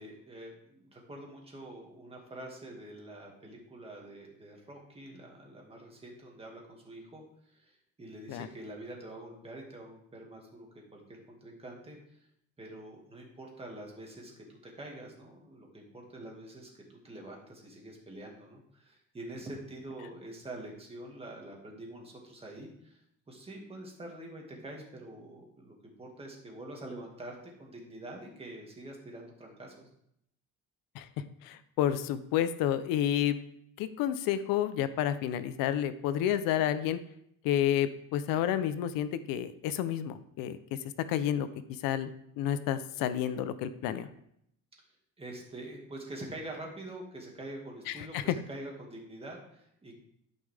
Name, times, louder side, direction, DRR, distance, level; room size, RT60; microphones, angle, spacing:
voice 1, 0.0-12.3 12.6-14.4 14.7-23.0 23.3-29.9 45.2-49.9, right 1 dB, 15° right, -1 dB, 2.1 m, -46 dB
voice 2, 31.4-33.4 33.8-37.0 37.4-40.8 41.1-44.1 47.9-48.4, left 10 dB, 85° left, 12 dB, 0.7 m, -30 dB
13.0 x 5.5 x 3.4 m, 0.74 s
cardioid pair, 150°, 33 cm